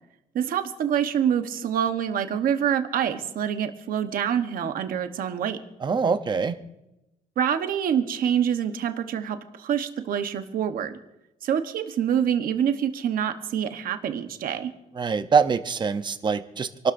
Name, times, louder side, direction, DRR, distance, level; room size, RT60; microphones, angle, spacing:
voice 1, 0.3-5.6 7.4-11.0 11.4-14.7, right 9 dB, 70° right, 7 dB, 1.2 m, -26 dB
voice 2, 5.8-6.6 15.0-16.9, right 5 dB, 30° right, 10 dB, 0.8 m, -24 dB
28.0 x 12.5 x 2.7 m, 0.91 s
cardioid pair, 165°, 15 cm